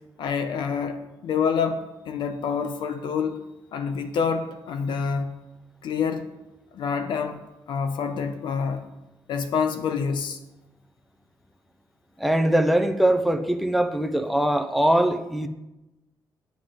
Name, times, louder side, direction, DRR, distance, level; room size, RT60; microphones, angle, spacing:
voice 1, 0.2-3.4 3.7-5.3 5.8-6.3 6.7-7.4 7.7-8.9 9.3-10.4, left 6 dB, 80° left, 7 dB, 1.1 m, -27 dB
voice 2, 12.2-15.5, right 1 dB, ahead, 8 dB, 0.8 m, -22 dB
9.3 x 7.9 x 5.3 m, 0.97 s
cardioid pair, 115°, 8 cm